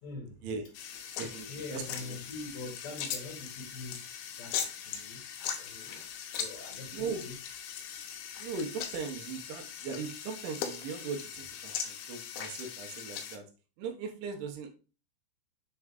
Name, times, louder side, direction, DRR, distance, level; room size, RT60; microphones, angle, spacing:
voice 1, 0.0-0.4 0.9-1.0 1.5-7.3, left 3 dB, 55° left, -1 dB, 2.1 m, -44 dB
sound 1, 0.7-13.4, left 8 dB, 80° left, 3.1 m, -40 dB
voice 2, 1.2-2.2 6.9-7.2 8.4-13.4 13.8-14.7, right 5 dB, 80° right, 4 dB, 3.3 m, -39 dB
7.6 x 3.6 x 3.6 m, 0.34 s
omnidirectional pair, 5.6 m